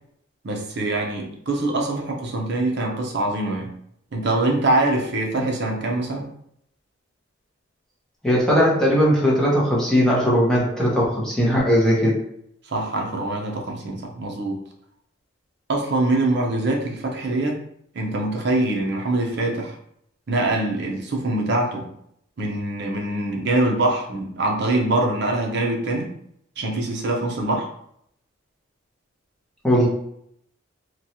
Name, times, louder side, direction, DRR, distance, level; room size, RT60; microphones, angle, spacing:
voice 1, 0.4-3.7 4.1-6.3 12.7-14.6 15.7-17.6 17.9-19.7 20.3-21.9 22.4-26.1 26.6-27.7, right 2 dB, 55° right, 0 dB, 0.6 m, -24 dB
voice 2, 8.2-12.1 29.6-29.9, equal, 5° left, -6 dB, 0.7 m, -19 dB
3.0 x 2.3 x 2.7 m, 0.71 s
head